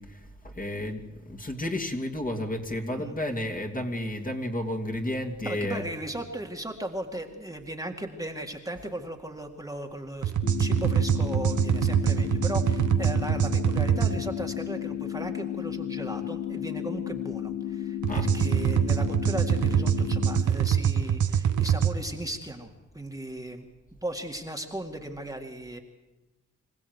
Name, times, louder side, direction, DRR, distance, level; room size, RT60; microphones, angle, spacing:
voice 1, 0.0-5.9 18.1-18.3, left 1 dB, 30° left, 3 dB, 2.7 m, -32 dB
voice 2, 5.5-10.3 10.6-23.6 24.0-25.8, right 1 dB, 10° right, 2 dB, 2.1 m, -37 dB
sound 1, 10.2-14.1 18.0-21.9, right 9 dB, 85° right, 1.2 m, -24 dB
sound 2, 10.4-20.4, left 11 dB, 65° left, 1.5 m, -33 dB
25.5 x 16.0 x 8.2 m, 1.1 s
cardioid pair, 80°, 29 cm